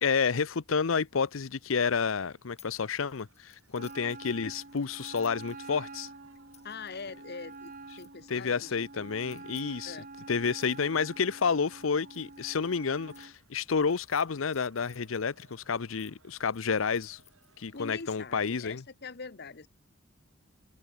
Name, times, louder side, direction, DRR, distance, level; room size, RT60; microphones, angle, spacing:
voice 1, 0.0-6.1 8.3-10.0 10.3-17.2 17.6-18.8, left 5 dB, 75° left, 0.7 m, -30 dB
Crowd, 1.2-18.5, right 4 dB, 80° right, 7.4 m, -67 dB
sound 1, 2.6-2.8 3.1-8.4 9.1-13.3 13.8-16.1 16.5-18.2, left 11 dB, 35° left, 6.6 m, -60 dB
Wind instrument woodwind instrument, 3.7-13.3, right 3 dB, 45° right, 3.8 m, -47 dB
voice 2, 6.6-9.1 9.8-10.1 17.7-19.7, left 4 dB, 50° left, 1.2 m, -43 dB
head